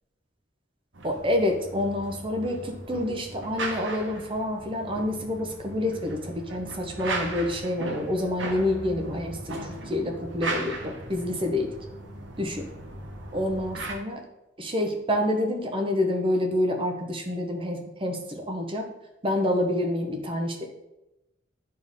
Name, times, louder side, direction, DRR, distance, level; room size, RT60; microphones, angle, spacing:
sound 1, 0.9-13.9, right 2 dB, 80° right, 1.1 m, -37 dB
voice 1, 1.0-11.7 12.4-12.7 13.3-14.2 14.6-18.9 19.2-20.6, left 1 dB, 30° right, 3 dB, 0.8 m, -28 dB
9.2 x 4.3 x 3.6 m, 0.92 s
head